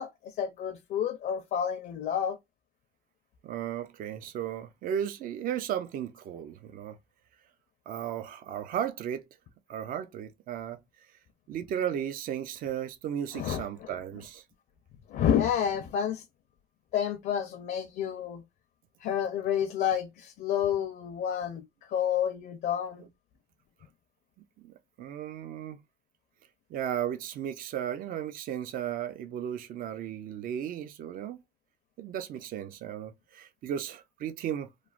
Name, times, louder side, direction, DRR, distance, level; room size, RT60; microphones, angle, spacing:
voice 1, 0.0-2.4 13.3-13.9 15.1-16.2 16.9-18.4 19.0-21.6 21.9-23.0, left 9 dB, 65° left, 0.5 m, -29 dB
voice 2, 3.4-7.0 7.9-9.3 9.7-10.8 11.5-14.4 24.6-25.8 26.7-31.4 32.0-34.7, right 9 dB, 55° right, 0.4 m, -35 dB
3.1 x 2.0 x 2.4 m
cardioid pair, 110°, 17 cm